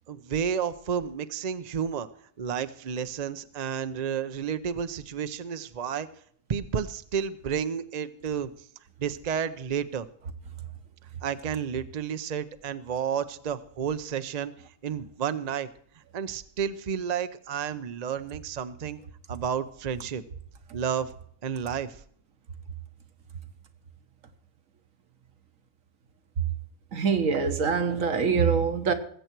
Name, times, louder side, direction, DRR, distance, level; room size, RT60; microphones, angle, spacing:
voice 1, 0.1-2.1 2.4-6.1 6.5-8.5 9.0-10.1 11.2-14.5 14.8-15.7 16.1-19.0 19.3-20.2 20.7-21.1 21.4-22.0, right 7 dB, 45° right, 0.5 m, -31 dB
voice 2, 26.9-28.9, right 5 dB, 70° right, 1.5 m, -24 dB
20.0 x 8.0 x 4.5 m
omnidirectional pair, 1.5 m